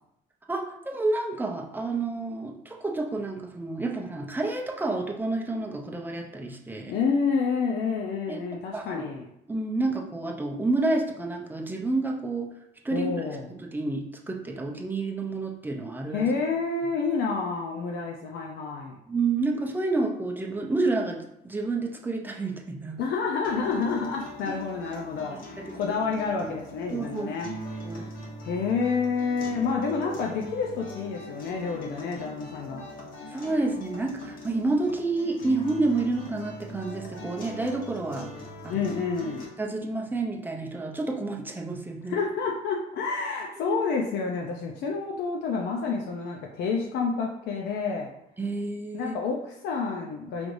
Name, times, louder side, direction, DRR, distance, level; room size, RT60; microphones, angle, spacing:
voice 1, 0.5-6.9 8.3-8.4 8.7-9.1 9.5-12.5 12.8-16.3 19.1-23.0 24.5-24.6 25.3-26.0 26.4-26.6 26.9-27.3 27.8-28.1 33.3-38.3 38.6-38.9 39.6-42.2 43.6-43.8 48.4-49.2, right 3 dB, 10° right, 1 dB, 0.5 m, -29 dB
voice 2, 6.9-9.3 12.9-13.5 16.1-19.0 23.0-27.5 28.4-32.9 38.7-39.4 42.1-48.1 48.9-50.5, left 5 dB, 75° left, 0 dB, 0.6 m, -29 dB
sound 1, 23.4-39.5, left 1 dB, 55° left, 1.1 m, -41 dB
5.1 x 3.1 x 2.6 m, 0.77 s
cardioid pair, 110°, 17 cm